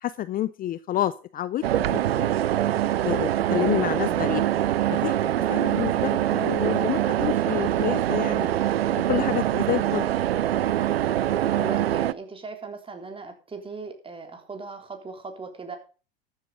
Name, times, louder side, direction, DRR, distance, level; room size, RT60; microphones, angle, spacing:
voice 1, 0.0-2.3 2.7-4.4 4.9-5.2 5.5-8.5 8.9-10.1, left 13 dB, 30° left, 16 dB, 0.6 m, -29 dB
sound 1, 1.6-12.1, right 12 dB, 85° right, 0.7 m, -24 dB
voice 2, 11.5-15.8, right 4 dB, 20° right, 4 dB, 3.7 m, -38 dB
14.0 x 8.2 x 5.1 m, 0.35 s
hypercardioid pair, 95°, 30 cm